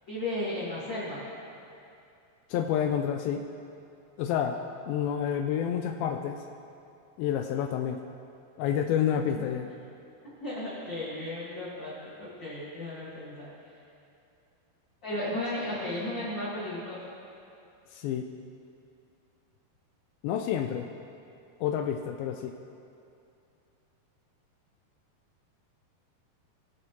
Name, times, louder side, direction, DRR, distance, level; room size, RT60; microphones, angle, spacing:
voice 1, 0.1-1.2 9.4-9.5 10.4-13.5 15.0-17.0, left 1 dB, 55° left, -8 dB, 1.3 m, -34 dB
voice 2, 2.5-3.4 4.2-4.6 4.9-6.4 7.2-8.0 8.6-9.7 17.9-18.3 20.2-20.9 21.6-22.5, left 9 dB, 85° left, 5 dB, 2.1 m, -29 dB
21.5 x 7.6 x 2.9 m, 2.6 s
omnidirectional pair, 4.6 m